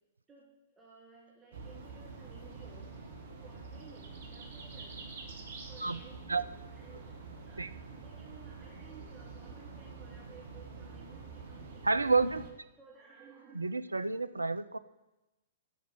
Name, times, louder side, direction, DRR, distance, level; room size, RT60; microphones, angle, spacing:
voice 1, 0.8-2.9 3.4-5.0 5.7-7.7 8.0-11.9 12.8-13.7, right 4 dB, 10° right, -6 dB, 1.9 m, -57 dB
sound 1, 1.5-12.5, right 4 dB, 55° right, 1.8 m, -47 dB
voice 2, 11.8-12.4 13.5-14.8, right 3 dB, 80° right, 12 dB, 0.4 m, -29 dB
11.5 x 5.1 x 7.0 m, 1.0 s
figure-of-eight pair, 110°, 0 cm